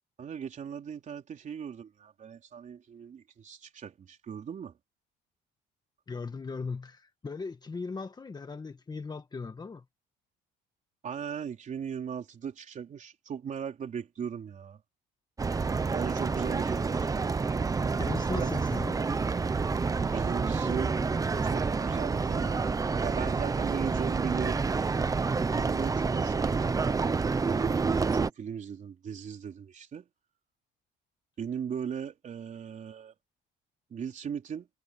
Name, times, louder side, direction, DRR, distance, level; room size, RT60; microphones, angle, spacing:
voice 1, 0.2-4.8 11.0-14.8 15.9-17.2 18.4-18.5 20.0-20.9 21.4-24.6 25.5-27.2 27.5-30.1 31.4-33.1 33.9-34.7, right 7 dB, 40° right, 4.0 m, -38 dB
voice 2, 6.1-9.8 18.0-19.0, left 4 dB, 20° left, 1.7 m, -38 dB
sound 1, 15.4-28.3, right 4 dB, 20° right, 0.8 m, -28 dB
cardioid pair, 140°, 19 cm